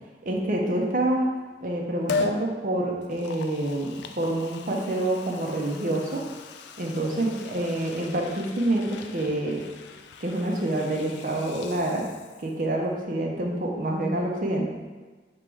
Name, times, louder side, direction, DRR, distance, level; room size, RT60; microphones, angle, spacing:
voice 1, 0.3-1.3 1.6-6.2 6.8-9.6 10.2-12.0 12.4-14.6, right 1 dB, 45° right, -1 dB, 0.6 m, -27 dB
Liquid, 2.1-2.4 3.0-12.7 13.0-13.1, left 4 dB, 75° left, 0.3 m, -38 dB
4.7 x 3.0 x 3.5 m, 1.3 s
head